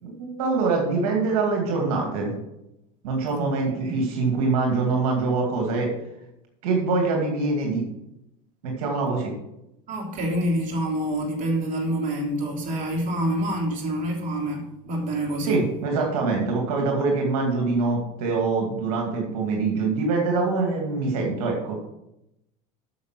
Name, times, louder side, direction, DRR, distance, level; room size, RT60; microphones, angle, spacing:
voice 1, 0.0-2.3 3.0-5.9 6.6-7.8 8.6-9.3 15.4-21.8, right 3 dB, 80° right, 0 dB, 2.3 m, -24 dB
voice 2, 3.3-4.0 9.9-15.6, right 1 dB, 45° right, 0 dB, 3.3 m, -27 dB
9.4 x 6.7 x 6.1 m, 0.87 s
supercardioid pair, 105°, 19 cm